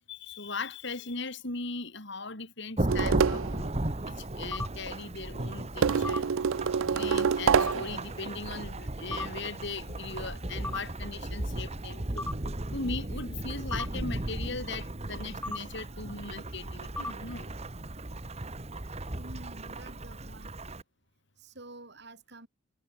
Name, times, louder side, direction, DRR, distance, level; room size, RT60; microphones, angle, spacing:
voice 1, 0.1-3.8 4.1-6.3 6.8-12.3 12.7-17.6, left 3 dB, 60° left, 4.3 m, -39 dB
Thunderstorm / Rain, 2.8-20.8, right 1 dB, 30° right, 1.4 m, -36 dB
sound 1, 2.9-3.6 5.8-8.0, right 6 dB, 75° right, 0.4 m, -26 dB
sound 2, 4.5-4.7 6.0-6.2 7.6-7.7 9.1-9.3 10.6-10.8 12.2-12.3 13.7-13.9 15.4-15.6 17.0-17.1, left 2 dB, 10° left, 1.2 m, -33 dB
voice 2, 15.8-16.3 19.2-20.6 21.4-22.5, right 2 dB, 55° right, 5.1 m, -49 dB
head